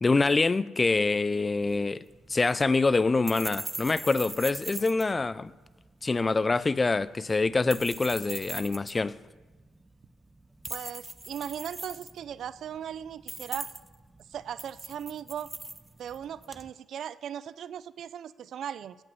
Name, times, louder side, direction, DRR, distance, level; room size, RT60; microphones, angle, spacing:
voice 1, 0.0-2.0 2.3-5.5 6.0-9.2, left 3 dB, 25° left, 0.4 m, -25 dB
sound 1, 1.6-16.7, right 2 dB, 15° right, 0.7 m, -42 dB
voice 2, 10.7-13.7 14.3-15.5 16.0-19.0, right 9 dB, 65° right, 0.5 m, -38 dB
16.0 x 5.5 x 9.4 m
cardioid pair, 90°, 0 cm